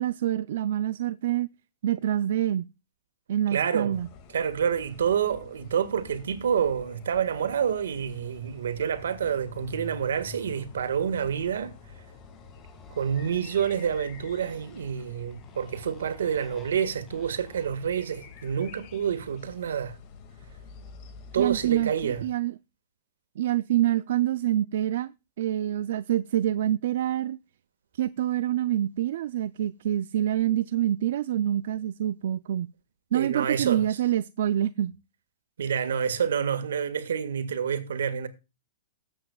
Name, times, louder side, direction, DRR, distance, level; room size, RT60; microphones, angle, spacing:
voice 1, 0.0-1.5 1.8-2.7 3.3-4.1 21.4-22.5 23.4-25.1 25.4-27.4 27.9-32.7 33.1-34.9, right 12 dB, 65° right, 0.4 m, -26 dB
voice 2, 3.5-4.0 4.3-11.8 12.9-20.0 21.3-22.3 33.1-34.0 35.6-38.3, right 8 dB, 85° right, 1.7 m, -28 dB
sound 1, 3.9-22.2, left 5 dB, 35° left, 2.1 m, -49 dB
Motorcycle, 7.1-19.9, left 3 dB, 15° left, 2.1 m, -52 dB
19.5 x 8.0 x 2.4 m
hypercardioid pair, 145°, 0 cm